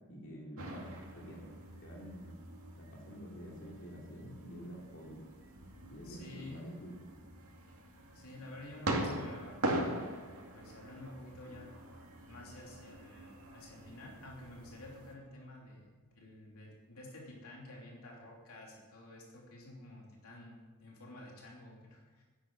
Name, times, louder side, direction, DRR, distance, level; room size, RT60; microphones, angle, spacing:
voice 1, 0.0-1.5 1.8-2.3 2.7-5.2 5.9-7.0, equal, 60° left, -3 dB, 3.0 m, -48 dB
sound 1, 0.6-15.1, right 1 dB, 85° right, 2.3 m, -42 dB
voice 2, 6.0-6.6 8.1-10.1 10.5-11.7 12.3-22.2, left 1 dB, 80° left, -2 dB, 3.0 m, -51 dB
11.0 x 9.7 x 7.4 m, 1.3 s
head